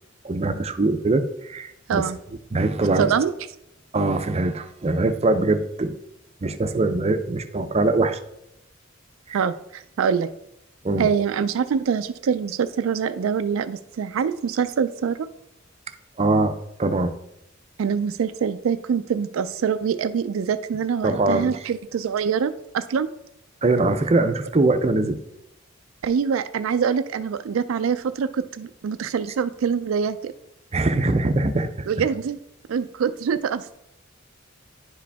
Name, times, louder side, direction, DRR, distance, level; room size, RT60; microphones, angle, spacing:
voice 1, 0.2-2.1 2.5-3.1 3.9-6.0 6.4-8.2 9.3-9.4 10.8-11.1 16.2-17.1 21.0-21.5 23.6-25.2 30.7-31.9, right 2 dB, 30° right, 9 dB, 0.5 m, -22 dB
voice 2, 3.0-3.3 9.3-10.3 11.0-15.3 17.8-23.1 26.0-30.3 31.9-32.4 32.7-33.8, right 6 dB, 85° right, 10 dB, 0.4 m, -24 dB
10.0 x 4.9 x 3.4 m, 0.82 s
head